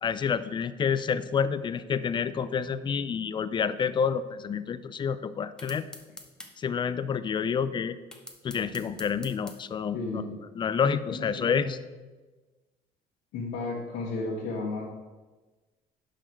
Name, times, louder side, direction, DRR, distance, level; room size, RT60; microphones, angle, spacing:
voice 1, 0.0-5.9 6.6-8.0 8.4-10.2 10.5-11.8, left 6 dB, 30° left, 14 dB, 0.4 m, -28 dB
sound 1, 5.6-6.5 8.1-9.6, left 1 dB, 5° left, 0.9 m, -44 dB
voice 2, 9.9-10.4 11.1-11.7 13.3-14.8, left 3 dB, 85° left, -6 dB, 1.5 m, -33 dB
5.8 x 4.9 x 6.2 m, 1.3 s
cardioid pair, 110°, 17 cm